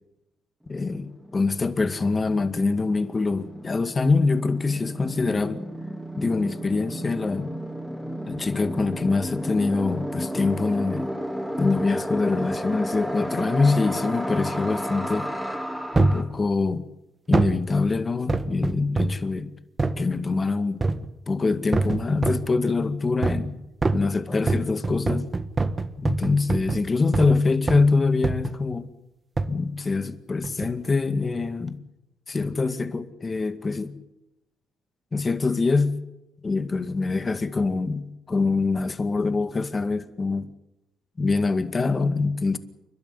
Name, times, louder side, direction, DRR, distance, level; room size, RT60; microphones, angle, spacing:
voice 1, 0.7-5.6 6.2-7.5 8.3-11.1 11.6-15.3 15.9-16.9 17.3-19.5 20.0-20.8 21.3-23.6 23.9-25.3 26.0-28.9 29.5-31.8 32.3-33.9 35.1-36.0 36.4-40.5 41.2-42.6, left 3 dB, 30° left, 2.1 m, -24 dB
sound 1, 0.7-0.8 1.0-16.2, equal, ahead, 3.9 m, -33 dB
sound 2, 15.9-16.3 17.3-17.6 18.3-19.2 19.8-20.0 20.8-21.1 21.7-22.5 23.2-23.5 23.8-27.4 27.7-27.9 28.2-28.6 29.4-29.6 30.4-30.7 31.3-31.4, right 3 dB, 25° right, 1.5 m, -25 dB
29.5 x 12.0 x 9.9 m
cardioid pair, 90°, 0 cm